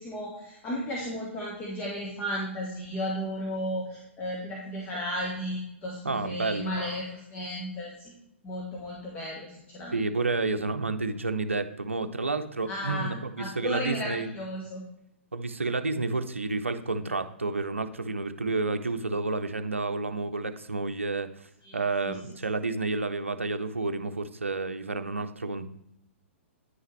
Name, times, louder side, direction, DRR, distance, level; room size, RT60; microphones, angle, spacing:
voice 1, 0.0-8.1 8.4-10.0 12.7-14.8 21.6-22.2, equal, 25° left, -3 dB, 1.3 m, -34 dB
voice 2, 6.0-6.7 9.9-14.3 15.3-25.7, right 3 dB, 80° right, 9 dB, 0.5 m, -30 dB
9.5 x 5.6 x 3.2 m, 0.80 s
figure-of-eight pair, 115°, 7 cm